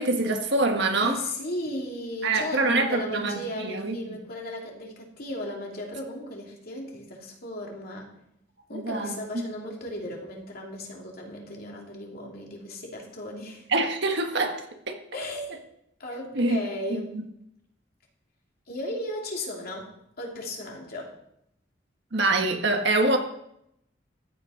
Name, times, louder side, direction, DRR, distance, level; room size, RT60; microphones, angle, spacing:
voice 1, 0.0-1.2 2.2-4.2 8.7-9.1 13.7-15.0 16.4-16.6 16.9-17.0 22.1-23.2, right 2 dB, 65° right, 4 dB, 1.7 m, -25 dB
voice 2, 1.0-8.1 8.7-13.7 15.1-15.6 16.0-17.1 18.7-19.9 20.2-21.1, left 1 dB, 55° left, -1 dB, 3.1 m, -36 dB
14.5 x 8.9 x 5.1 m, 0.77 s
head